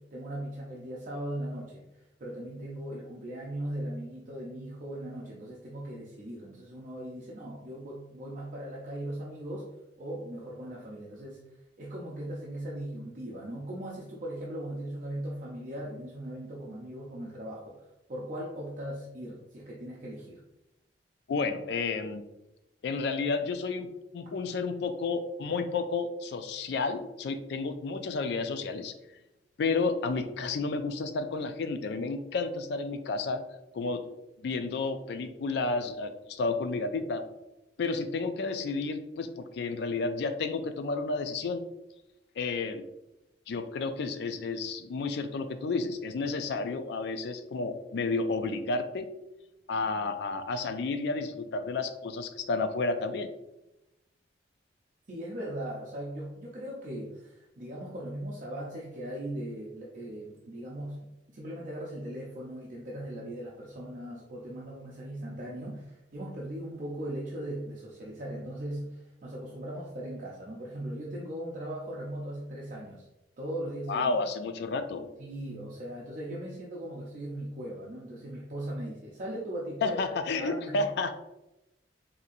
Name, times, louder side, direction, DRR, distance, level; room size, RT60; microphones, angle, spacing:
voice 1, 0.1-9.7 10.0-11.4 11.8-20.4 55.1-61.0 61.3-73.1 73.4-74.1 75.2-80.0 80.4-80.8, right 1 dB, 45° right, -4 dB, 0.5 m, -39 dB
voice 2, 21.3-22.2 22.8-23.9 24.1-28.9 29.6-33.4 33.7-34.2 34.4-37.2 37.8-41.6 42.4-42.8 43.5-49.1 49.7-53.3 73.9-75.1 79.8-81.1, left 3 dB, 65° left, 9 dB, 0.3 m, -31 dB
4.0 x 2.7 x 2.5 m, 0.92 s
head